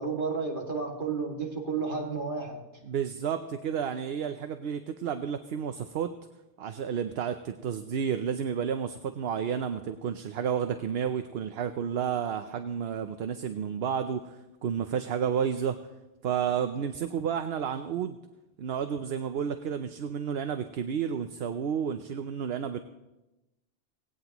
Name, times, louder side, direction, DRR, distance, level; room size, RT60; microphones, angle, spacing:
voice 1, 0.0-2.6, right 4 dB, 55° right, 0 dB, 2.3 m, -32 dB
voice 2, 2.8-6.1 6.6-15.8 16.2-18.2 18.6-22.8, right 8 dB, 75° right, 9 dB, 0.9 m, -31 dB
18.0 x 17.5 x 3.0 m, 1.0 s
omnidirectional pair, 1.0 m